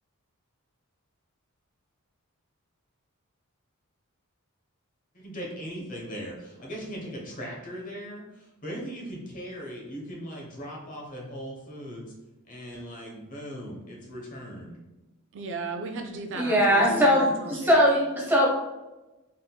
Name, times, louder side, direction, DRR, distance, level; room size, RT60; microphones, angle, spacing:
voice 1, 5.1-12.1 12.5-14.8, equal, 35° left, -2 dB, 1.0 m, -39 dB
voice 2, 15.3-16.9 17.1-17.8, right 3 dB, 55° right, 5 dB, 0.4 m, -35 dB
voice 3, 16.3-18.5, equal, 10° right, -3 dB, 0.8 m, -21 dB
4.1 x 3.7 x 2.3 m, 1.1 s
head